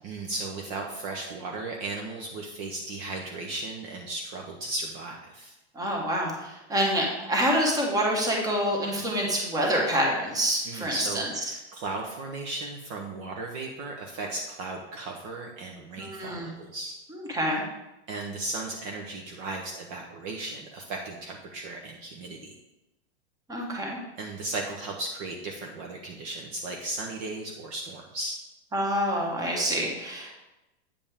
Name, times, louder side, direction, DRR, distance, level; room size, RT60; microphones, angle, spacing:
voice 1, 0.0-5.5 10.6-17.0 18.1-22.5 24.2-28.4, right 2 dB, 40° right, 1 dB, 0.9 m, -36 dB
voice 2, 5.7-11.2 16.0-16.5 17.1-17.6 23.5-24.0 28.7-30.4, equal, 10° right, -1 dB, 1.3 m, -27 dB
8.6 x 5.2 x 3.5 m, 0.96 s
supercardioid pair, 145°, 34 cm